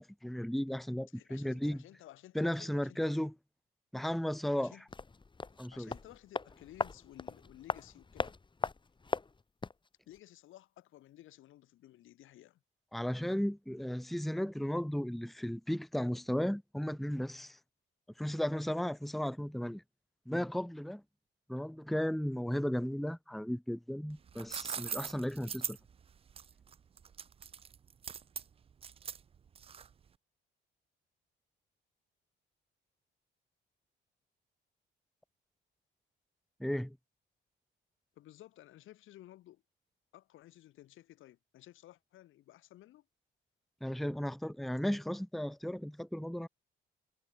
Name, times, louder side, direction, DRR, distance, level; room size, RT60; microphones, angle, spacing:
voice 1, 0.0-1.8 2.3-3.3 3.9-4.8 5.6-5.9 12.9-17.6 18.2-19.8 20.3-21.0 21.5-25.8 36.6-37.0 43.8-46.5, equal, ahead, 1.0 m, -35 dB
voice 2, 1.1-3.3 4.6-4.8 5.7-8.4 10.1-12.6 38.2-39.6 40.1-43.0, left 14 dB, 85° left, 3.6 m, -55 dB
sound 1, 4.9-9.9 10.1-10.2, left 4 dB, 25° left, 2.0 m, -39 dB
sound 2, 24.1-30.1, right 7 dB, 30° right, 0.4 m, -42 dB
cardioid pair, 90°, 20 cm